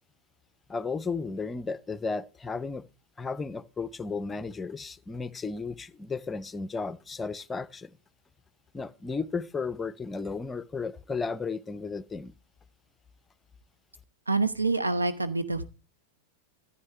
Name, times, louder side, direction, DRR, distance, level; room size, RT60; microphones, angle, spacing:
voice 1, 0.7-2.9 3.2-7.9 8.7-12.3, left 4 dB, 15° left, 0.5 m, -34 dB
voice 2, 14.3-15.6, right 3 dB, 80° right, 1.0 m, -26 dB
14.0 x 9.1 x 3.3 m
figure-of-eight pair, 90°, 0 cm